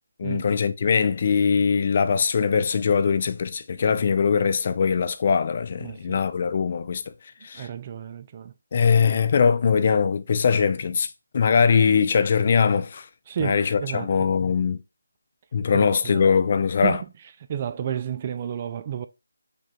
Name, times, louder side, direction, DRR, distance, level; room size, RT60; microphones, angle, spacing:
voice 1, 0.2-7.0 7.4-7.7 8.7-11.1 11.3-13.1 13.4-14.8 15.5-17.0, left 6 dB, 35° left, 0.4 m, -21 dB
voice 2, 5.8-6.2 7.5-8.5 13.3-14.1 15.7-16.3 16.8-17.1 17.5-19.1, right 9 dB, 30° right, 0.3 m, -31 dB
5.1 x 2.2 x 4.4 m
figure-of-eight pair, 160°, 0 cm